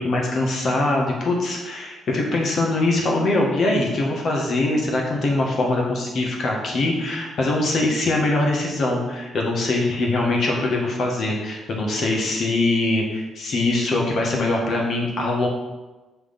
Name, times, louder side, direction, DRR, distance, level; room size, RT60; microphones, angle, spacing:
voice 1, 0.0-15.5, left 2 dB, 55° left, -1 dB, 1.6 m, -22 dB
5.9 x 3.3 x 5.8 m, 1.1 s
cardioid pair, 90°, 0 cm